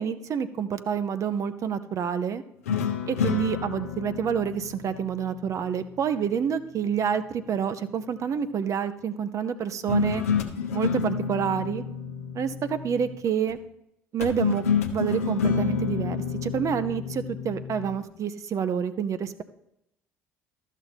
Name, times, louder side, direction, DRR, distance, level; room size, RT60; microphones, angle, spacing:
voice 1, 0.0-2.4 3.1-10.2 10.7-11.8 12.3-13.6 14.1-14.6 14.9-19.4, right 7 dB, 40° right, 11 dB, 0.7 m, -28 dB
sound 1, 2.7-6.1 9.9-13.3 14.2-18.0, left 6 dB, 75° left, 0.8 m, -29 dB
13.0 x 6.3 x 4.1 m, 0.81 s
figure-of-eight pair, 55°, 8 cm